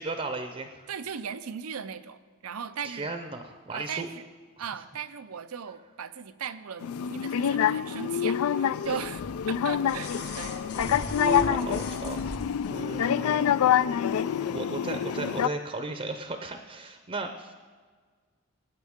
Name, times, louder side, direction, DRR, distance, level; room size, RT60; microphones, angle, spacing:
voice 1, 0.0-0.9 2.8-4.1 8.8-9.0 11.2-12.2 12.7-13.8 14.4-17.5, right 3 dB, 30° right, 6 dB, 0.6 m, -36 dB
voice 2, 0.9-3.1 3.7-4.2 4.6-9.2 9.5-10.1 10.3-10.6, right 7 dB, 90° right, 13 dB, 0.6 m, -37 dB
sound 1, 6.8-15.5, left 9 dB, 80° left, 0.3 m, -27 dB
sound 2, 9.0-12.8 14.1-14.2, left 1 dB, 50° left, 1.4 m, -35 dB
19.0 x 9.3 x 3.6 m, 1.5 s
head